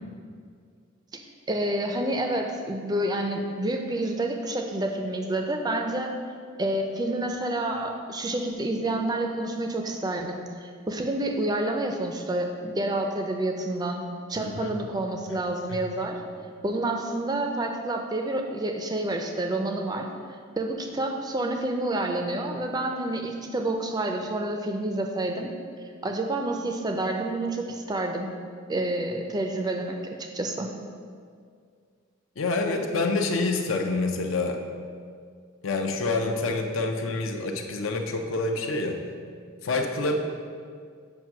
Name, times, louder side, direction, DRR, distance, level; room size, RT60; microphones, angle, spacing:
voice 1, 1.5-6.1 6.6-16.2 16.6-20.1 20.6-25.5 26.0-28.3 28.7-30.7, right 1 dB, 20° right, 4 dB, 0.4 m, -29 dB
voice 2, 14.4-14.8 15.7-15.8 32.4-34.6 35.6-39.1 39.6-40.2, left 3 dB, 75° left, 4 dB, 0.6 m, -27 dB
7.3 x 2.6 x 5.8 m, 2.1 s
head